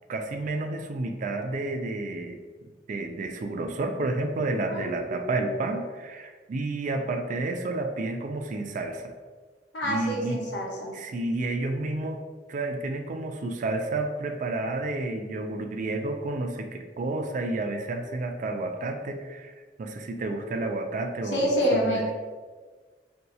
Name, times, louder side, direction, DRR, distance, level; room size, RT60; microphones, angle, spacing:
voice 1, 0.1-9.1 9.8-10.4 10.9-12.2 12.5-22.0, right 2 dB, 45° right, 6 dB, 0.3 m, -31 dB
voice 2, 4.7-5.3 9.7-10.9 21.3-22.1, equal, 80° left, -3 dB, 0.9 m, -27 dB
2.7 x 2.3 x 4.1 m, 1.4 s
head